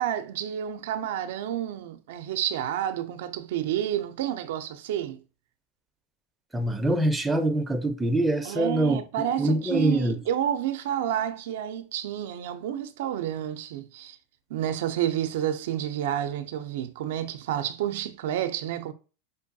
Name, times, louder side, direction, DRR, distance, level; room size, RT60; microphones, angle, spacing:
voice 1, 0.0-5.2 8.4-14.2 14.5-18.9, right 11 dB, 75° right, 0.4 m, -30 dB
voice 2, 6.5-9.0 9.4-10.2, right 1 dB, 5° right, 0.4 m, -24 dB
5.1 x 2.2 x 2.6 m
supercardioid pair, 120°, 0 cm